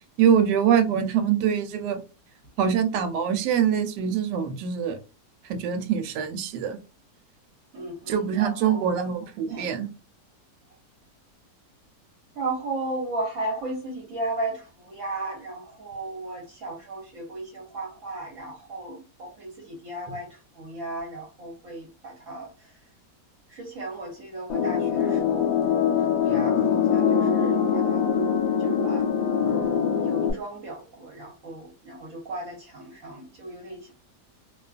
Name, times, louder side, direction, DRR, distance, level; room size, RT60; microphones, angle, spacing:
voice 1, 0.2-2.0 2.6-5.0 5.5-6.8 8.1-9.9, right 8 dB, 85° right, 1.2 m, -24 dB
voice 2, 7.7-8.9 9.5-9.7 12.3-22.7 23.5-25.6 26.0-28.1 28.6-29.1 29.9-33.9, right 2 dB, 60° right, 1.0 m, -35 dB
sound 1, 24.5-30.3, left 7 dB, 85° left, 1.2 m, -23 dB
2.7 x 2.3 x 2.3 m
omnidirectional pair, 1.8 m